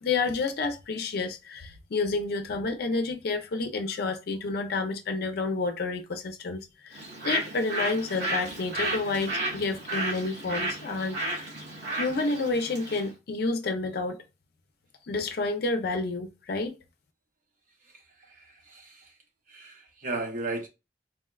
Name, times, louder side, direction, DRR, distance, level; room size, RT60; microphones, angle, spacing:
voice 1, 0.0-11.2 11.9-14.2 15.1-16.8, left 3 dB, 60° left, 0.5 m, -30 dB
Bird, 6.9-13.1, right 1 dB, 85° right, 1.8 m, -33 dB
voice 2, 18.7-19.1 19.5-20.7, right 2 dB, 50° right, 0.7 m, -34 dB
4.0 x 2.1 x 2.2 m
head